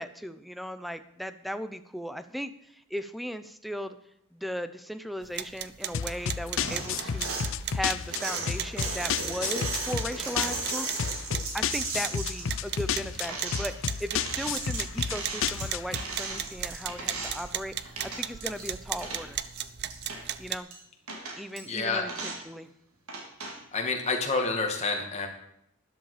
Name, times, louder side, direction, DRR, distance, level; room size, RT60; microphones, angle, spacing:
voice 1, 0.0-4.0 4.3-7.4 7.7-11.1 11.5-19.4 20.4-20.7 21.4-22.7, equal, ahead, 11 dB, 0.7 m, -37 dB
sound 1, 5.2-20.6, right 10 dB, 50° right, 0.6 m, -37 dB
sound 2, 5.9-16.0, left 7 dB, 60° left, 0.5 m, -32 dB
Drawer silverware forks and spoons, 6.6-7.5 8.0-17.6 17.9-18.7 19.0-20.2 20.7-20.8 21.1-21.6 22.1-22.4 23.1-23.6, right 3 dB, 80° right, 3.4 m, -36 dB
voice 2, 21.6-22.1 23.7-25.3, left 3 dB, 30° left, 2 dB, 2.3 m, -28 dB
13.0 x 11.5 x 5.0 m, 0.75 s
head